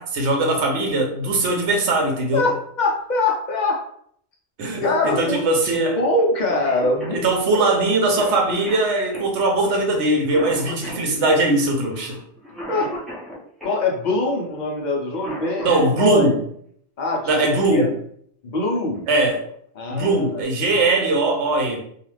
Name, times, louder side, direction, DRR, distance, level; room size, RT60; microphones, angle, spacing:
voice 1, 0.0-2.4 4.6-6.0 7.1-12.2 15.6-16.4 17.3-17.9 19.1-19.4 19.9-21.8, right 2 dB, 80° right, 2 dB, 1.0 m, -20 dB
voice 2, 2.3-3.9 4.8-5.5 6.0-7.2 12.7-12.9 13.6-16.3 17.0-17.3 17.7-17.9 18.4-19.1 19.8-20.4, left 2 dB, 50° left, -1 dB, 0.6 m, -23 dB
Cough, 6.2-6.3 6.5-13.8 14.9-16.0 17.6-17.7 18.8-19.0 19.5-19.6 20.0-20.4, left 1 dB, ahead, 0.7 m, -36 dB
2.4 x 2.4 x 3.2 m, 0.65 s
omnidirectional pair, 1.2 m